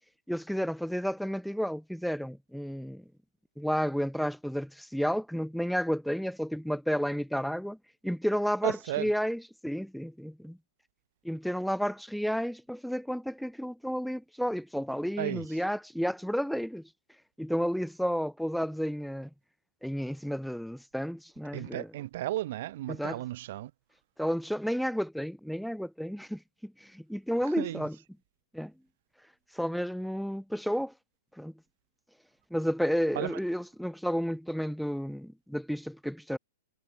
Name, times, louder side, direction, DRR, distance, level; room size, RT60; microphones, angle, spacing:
voice 1, 0.3-3.0 3.6-7.8 8.0-10.6 11.2-16.9 17.4-19.3 19.8-21.9 22.9-23.2 24.2-28.0 28.5-28.7 29.5-30.9 31.4-31.5 32.5-36.4, equal, ahead, 0.6 m, -32 dB
voice 2, 8.6-9.1 15.2-15.6 21.5-23.7 27.4-27.8 33.1-33.3, right 15 dB, 50° right, 1.0 m, -34 dB
figure-of-eight pair, 105°, 0 cm